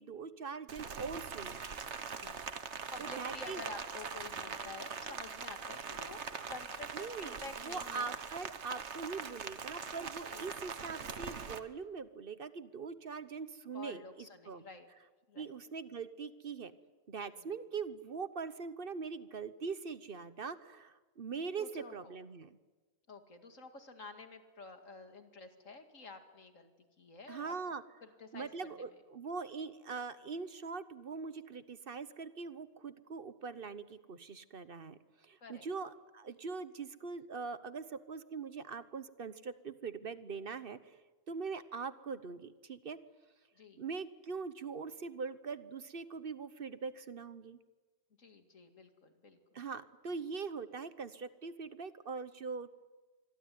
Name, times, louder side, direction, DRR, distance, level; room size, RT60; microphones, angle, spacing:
voice 1, 0.0-1.7 3.0-3.6 6.9-7.4 7.6-14.6 15.4-16.7 17.1-22.6 27.3-27.8 28.3-43.0 43.8-47.6 49.5-52.7, right 5 dB, 50° right, 14 dB, 1.1 m, -42 dB
Rain, 0.7-11.6, right 6 dB, 65° right, 1.6 m, -42 dB
voice 2, 2.9-8.1 10.3-10.5 13.7-14.9 15.3-15.5 17.3-17.5 21.6-22.2 23.1-27.5 28.0-28.5 35.4-35.7 43.5-43.8 48.2-49.7, left 3 dB, 85° left, 6 dB, 2.7 m, -50 dB
26.0 x 22.0 x 9.4 m, 1.3 s
omnidirectional pair, 1.3 m